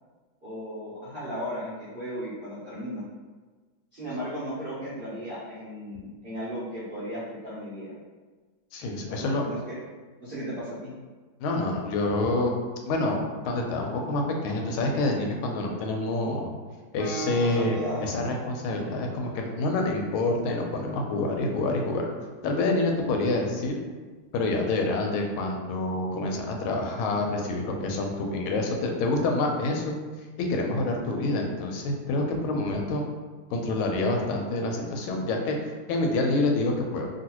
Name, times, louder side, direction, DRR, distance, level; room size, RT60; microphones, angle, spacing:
voice 1, 0.4-3.0 3.9-7.9 9.0-9.6 10.2-10.9 17.4-18.1, equal, 60° right, -12 dB, 0.5 m, -35 dB
voice 2, 8.7-9.4 11.4-12.5 12.9-13.2 13.4-16.5 16.9-22.1 22.4-23.7 24.3-30.0 30.4-33.0 33.5-37.1, left 2 dB, 90° left, 2 dB, 1.4 m, -27 dB
Guitar, 17.0-20.6, right 3 dB, 70° left, 1.0 m, -40 dB
3.0 x 2.6 x 2.9 m, 1.4 s
omnidirectional pair, 2.2 m